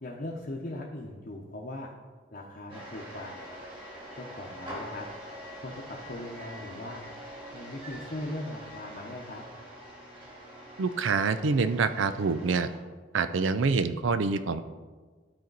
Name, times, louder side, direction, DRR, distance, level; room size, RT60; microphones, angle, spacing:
voice 1, 0.0-1.9 2.3-3.5 4.2-5.1 5.6-5.8 6.1-7.0 7.5-9.4, left 1 dB, 45° left, -2 dB, 0.8 m, -39 dB
sound 1, 2.7-12.8, equal, 25° right, 2.4 m, -44 dB
voice 2, 10.8-12.7 13.1-14.6, right 4 dB, 85° right, 12 dB, 0.5 m, -26 dB
12.0 x 4.4 x 4.0 m, 1.4 s
head